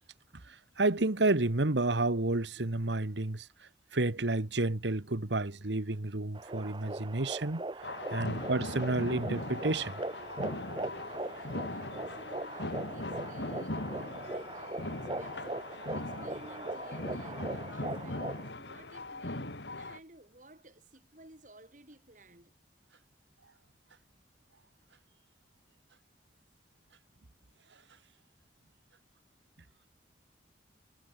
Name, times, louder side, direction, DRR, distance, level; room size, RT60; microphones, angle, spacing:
voice 1, 0.5-3.5 3.9-7.6 8.1-10.0, right 2 dB, 80° right, 1.5 m, -30 dB
sound 1, 6.3-18.5, right 2 dB, 25° right, 0.7 m, -40 dB
sound 2, 7.8-20.0, left 2 dB, 75° left, 3.2 m, -40 dB
voice 2, 11.1-18.4 18.7-22.5, right 1 dB, 45° right, 4.6 m, -57 dB
head